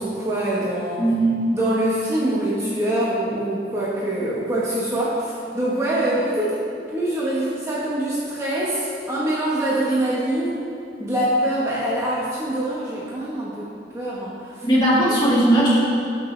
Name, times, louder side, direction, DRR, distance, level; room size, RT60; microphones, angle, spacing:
voice 1, 0.0-1.0 1.5-6.6 6.9-10.6 11.0-13.7 13.9-14.7, right 1 dB, 15° right, -7 dB, 1.2 m, -24 dB
voice 2, 1.0-1.4 14.6-15.8, right 1 dB, 25° left, -8 dB, 2.7 m, -18 dB
17.5 x 6.3 x 3.3 m, 2.5 s
head